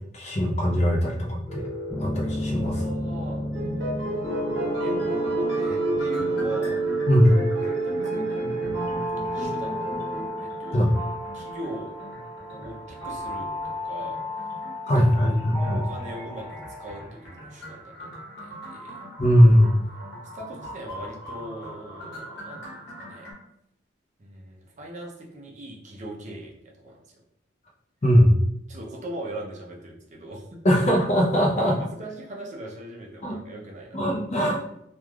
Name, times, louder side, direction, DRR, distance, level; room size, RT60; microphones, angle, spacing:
voice 1, 0.1-1.7 2.0-2.8 7.1-7.4 10.7-10.9 14.8-15.8 19.2-19.8 28.0-28.4 30.6-31.7 33.2-33.3 33.9-34.6, equal, 35° left, -2 dB, 0.5 m, -20 dB
sound 1, 1.5-17.0, right 2 dB, 15° left, 1.4 m, -30 dB
voice 2, 2.6-3.5 4.8-6.8 7.6-8.4 9.3-9.8 10.4-10.9 11.3-11.9 12.5-14.2 15.2-19.0 20.3-23.3 24.2-27.0 28.7-30.8 31.6-34.2, right 1 dB, 40° right, -1 dB, 0.5 m, -40 dB
sound 2, 3.5-10.3, equal, 70° right, 0.8 m, -32 dB
sound 3, 4.9-23.3, equal, 55° left, 1.1 m, -43 dB
3.2 x 2.3 x 2.2 m, 0.77 s
head